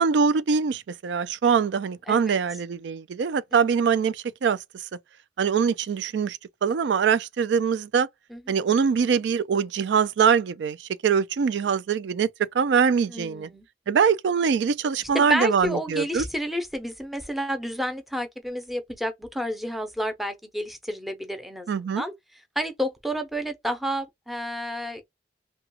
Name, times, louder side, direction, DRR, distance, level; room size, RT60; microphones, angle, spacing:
voice 1, 0.0-4.6 5.4-8.1 8.5-12.3 12.5-13.5 13.9-16.2 21.7-22.0, right 6 dB, 75° right, 0.3 m, -23 dB
voice 2, 2.1-2.4 3.5-3.6 8.3-8.4 13.1-13.7 15.1-21.7 22.0-22.1 22.6-25.0, equal, ahead, 0.5 m, -30 dB
2.8 x 2.3 x 2.7 m
head